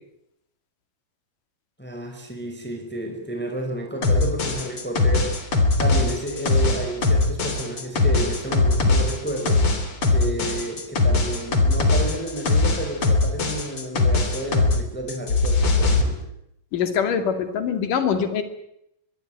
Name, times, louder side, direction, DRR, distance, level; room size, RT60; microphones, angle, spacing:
voice 1, 1.8-5.4 5.8-9.7 10.1-16.2, right 1 dB, 5° left, 3 dB, 5.0 m, -31 dB
sound 1, 4.0-14.8 15.1-16.0, left 3 dB, 40° left, 3.9 m, -20 dB
voice 2, 16.7-18.4, left 7 dB, 70° left, 9 dB, 3.9 m, -23 dB
23.5 x 21.5 x 9.2 m, 0.78 s
omnidirectional pair, 3.9 m